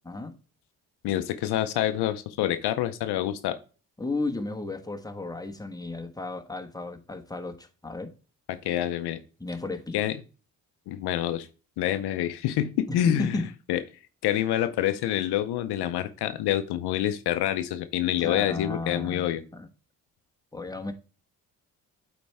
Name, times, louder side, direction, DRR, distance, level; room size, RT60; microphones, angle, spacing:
voice 1, 0.0-0.4 4.0-8.1 9.4-10.0 12.9-13.5 18.2-19.7 20.5-20.9, left 2 dB, 10° left, 1.4 m, -33 dB
voice 2, 1.0-3.6 8.5-9.2 9.9-10.2 10.9-11.5 11.8-13.4 13.7-13.8 14.2-19.4, left 12 dB, 80° left, 0.7 m, -27 dB
8.5 x 4.4 x 3.4 m
supercardioid pair, 55°, 39 cm